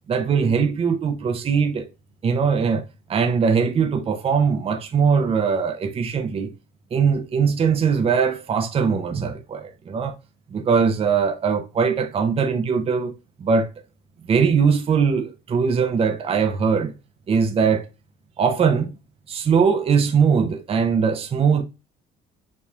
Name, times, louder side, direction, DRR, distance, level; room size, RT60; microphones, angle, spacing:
voice 1, 0.1-1.9 2.2-6.5 6.9-10.1 10.5-13.1 13.4-13.7 14.3-16.9 17.3-17.9 18.4-18.9 19.3-21.6, right 6 dB, 35° right, 0.6 m, -21 dB
5.5 x 3.1 x 2.4 m
cardioid pair, 110°, 17 cm